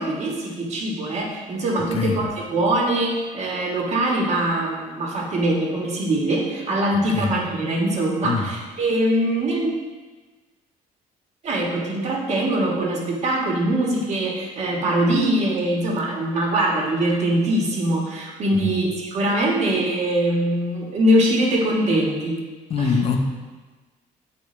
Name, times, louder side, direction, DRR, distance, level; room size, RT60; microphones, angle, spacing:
voice 1, 0.0-9.7 11.4-22.4 22.8-23.0, right 1 dB, 50° right, -2 dB, 1.5 m, -22 dB
voice 2, 22.7-23.2, left 4 dB, 40° left, 3 dB, 0.8 m, -22 dB
8.2 x 5.0 x 3.2 m, 1.3 s
cardioid pair, 135°, 15 cm